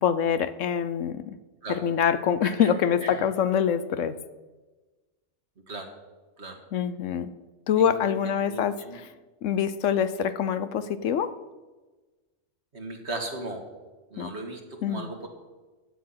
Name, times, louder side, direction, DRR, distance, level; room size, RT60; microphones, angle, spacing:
voice 1, 0.0-1.4 1.7-4.2 6.7-7.3 7.7-9.1 9.4-11.4 14.2-14.3 14.8-15.1, left 8 dB, 75° left, 14 dB, 1.1 m, -25 dB
voice 2, 7.8-9.0 12.7-13.6 14.1-15.3, right 2 dB, 60° right, 3 dB, 2.3 m, -37 dB
15.5 x 9.8 x 5.8 m, 1.2 s
omnidirectional pair, 1.3 m